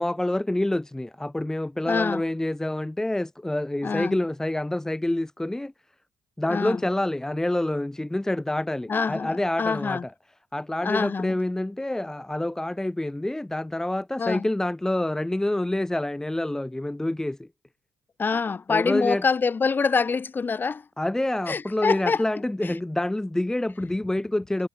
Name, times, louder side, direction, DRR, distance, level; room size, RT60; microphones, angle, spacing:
voice 1, 0.0-5.7 6.4-10.1 10.5-17.5 18.7-19.2 21.0-24.7, left 1 dB, 10° left, 2.4 m, -27 dB
voice 2, 1.9-2.2 3.8-4.2 6.5-6.8 8.9-10.0 10.8-11.4 14.2-14.5 18.2-20.8 21.5-22.2 22.6-22.7, left 5 dB, 35° left, 5.9 m, -25 dB
cardioid pair, 85°, 6 cm